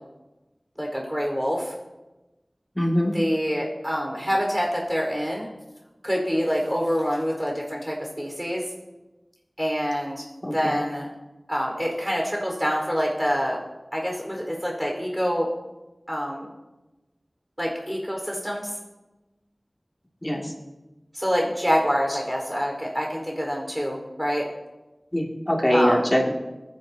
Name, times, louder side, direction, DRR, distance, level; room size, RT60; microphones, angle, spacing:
voice 1, 0.8-1.7 3.0-5.5 6.0-8.6 9.6-11.1 11.5-13.6 13.9-15.5 16.1-16.5 17.6-18.7 21.1-24.5 25.7-26.1, equal, 5° right, -1 dB, 4.5 m, -26 dB
voice 2, 2.8-3.1 10.4-10.7 20.2-20.4 25.1-26.3, equal, 20° left, -1 dB, 2.4 m, -22 dB
23.0 x 10.5 x 2.9 m, 1.1 s
wide cardioid pair, 45°, 0 cm